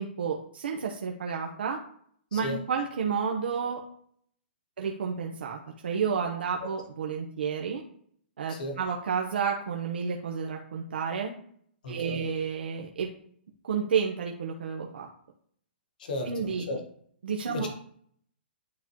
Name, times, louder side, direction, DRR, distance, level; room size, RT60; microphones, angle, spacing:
voice 1, 0.0-1.8 2.3-3.8 4.8-7.8 8.4-11.3 11.9-13.1 13.6-15.1 16.2-16.6 17.2-17.7, right 6 dB, 65° right, 1 dB, 0.8 m, -31 dB
voice 2, 11.8-12.2 16.0-16.3 16.7-16.8 17.5-17.7, left 1 dB, 50° left, 4 dB, 1.4 m, -34 dB
9.6 x 3.7 x 3.0 m, 0.63 s
hypercardioid pair, 180°, 6 cm